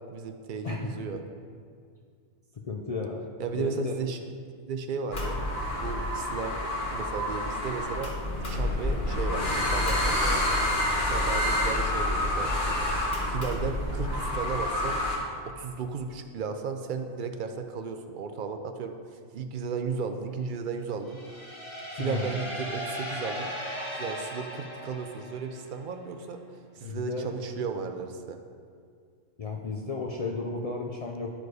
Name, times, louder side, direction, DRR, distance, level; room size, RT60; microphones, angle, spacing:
voice 1, 0.1-1.2 3.4-4.2 4.7-5.4 5.8-6.6 6.9-8.1 8.5-10.4 11.0-12.5 13.3-15.0 15.5-21.2 21.9-23.5 24.0-26.4 26.8-28.4, right 5 dB, 65° right, 7 dB, 0.5 m, -34 dB
voice 2, 2.5-3.3 3.5-3.9 22.0-22.4 26.8-27.3 29.4-31.3, left 3 dB, 75° left, 0 dB, 0.3 m, -33 dB
sound 1, 5.1-15.2, left 1 dB, 40° left, 1.4 m, -28 dB
sound 2, 21.1-25.8, equal, 25° left, 1.0 m, -37 dB
10.0 x 4.8 x 4.7 m, 2.1 s
omnidirectional pair, 1.4 m